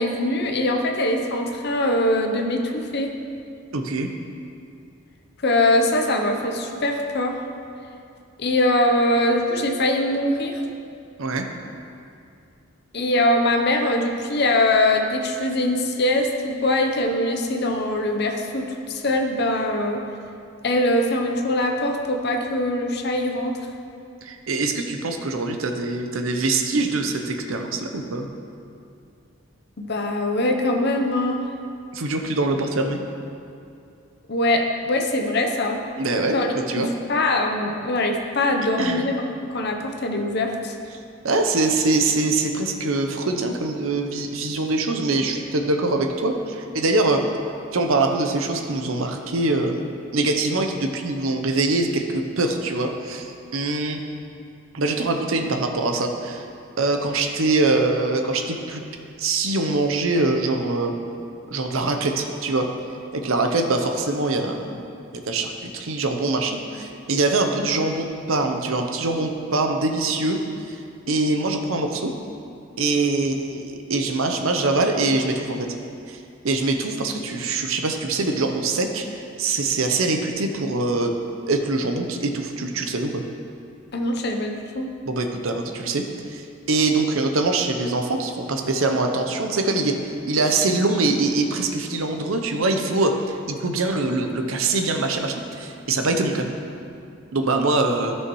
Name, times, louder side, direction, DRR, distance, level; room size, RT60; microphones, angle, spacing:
voice 1, 0.0-3.1 5.4-7.4 8.4-10.6 12.9-20.0 20.6-23.6 29.8-31.4 34.3-35.8 36.3-36.5 36.8-39.2 39.4-40.8 83.9-84.9, left 1 dB, 50° left, 3 dB, 0.7 m, -22 dB
voice 2, 3.7-4.1 11.2-11.5 24.2-28.3 31.9-33.0 36.0-36.9 38.8-39.1 41.2-47.3 47.7-54.0 54.7-56.5 56.8-58.8 59.2-60.9 61.5-62.7 63.1-64.7 65.1-70.4 71.1-72.1 72.8-75.7 76.1-81.1 81.5-83.2 85.1-86.0 86.3-89.9 90.2-96.5 97.3-98.2, right 2 dB, 80° right, 5 dB, 0.7 m, -23 dB
12.5 x 6.4 x 3.1 m, 2.5 s
head